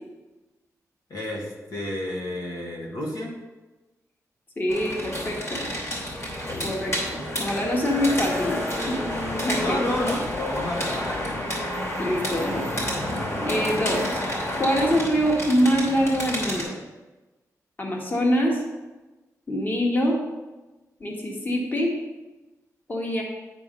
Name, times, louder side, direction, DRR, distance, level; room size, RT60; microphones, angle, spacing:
voice 1, 1.1-3.4 6.6-7.0 9.6-11.5, left 1 dB, 85° left, -1 dB, 1.7 m, -31 dB
voice 2, 4.6-5.7 6.6-8.6 8.9-9.0 9.4-9.8 12.0-12.7 13.5-14.2 14.6-16.7 17.8-18.6 19.5-20.2 21.0-21.9 22.9-23.2, equal, 30° left, -1 dB, 1.4 m, -24 dB
sound 1, 4.7-16.6, left 1 dB, 45° left, 3.1 m, -29 dB
9.2 x 4.6 x 5.4 m, 1.1 s
wide cardioid pair, 130°, 6 cm